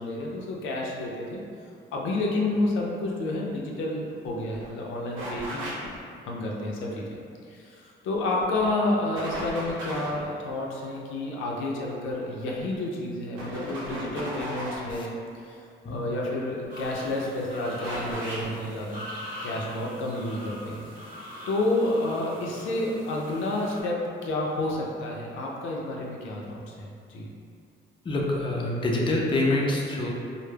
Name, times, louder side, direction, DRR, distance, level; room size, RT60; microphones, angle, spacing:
voice 1, 0.0-1.4 1.9-5.7 6.2-7.1 7.5-15.1 15.4-15.6 15.8-19.1 19.4-21.1 21.5-27.3, left 2 dB, 85° left, -2 dB, 0.4 m, -30 dB
sound 1, 4.2-4.3 4.5-4.7 5.2-6.0 8.1-8.7 9.2-10.2 12.4-12.7 13.4-14.9 16.6-17.1 17.8-18.5, equal, 80° right, 0.7 m, -36 dB
sound 2, 16.7-23.8, left 1 dB, 40° right, 1.0 m, -42 dB
voice 2, 28.1-30.1, left 2 dB, 25° left, -3 dB, 0.4 m, -26 dB
2.1 x 2.0 x 3.2 m, 2.4 s
cardioid pair, 90°, 20 cm